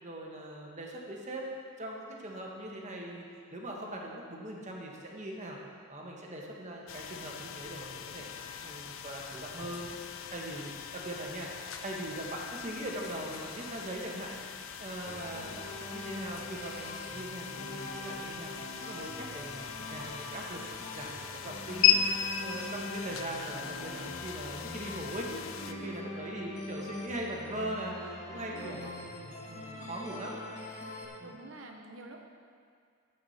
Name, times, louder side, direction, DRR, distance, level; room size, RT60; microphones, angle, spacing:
voice 1, 0.0-3.2 3.5-5.6 5.9-8.3 8.6-9.9 10.3-11.5 11.8-15.6 15.9-18.6 18.8-20.6 20.9-22.0 22.4-30.4 30.7-30.8 31.2-31.3, right 1 dB, 35° right, -1 dB, 1.5 m, -41 dB
sound 1, 6.9-25.7, left 8 dB, 70° left, 0.6 m, -37 dB
sound 2, 15.1-31.1, left 1 dB, 35° left, 1.6 m, -43 dB
voice 2, 25.6-26.1 28.3-28.9 29.7-29.9 31.2-32.2, right 2 dB, 65° right, 3 dB, 1.1 m, -49 dB
12.5 x 8.4 x 4.3 m, 2.1 s
head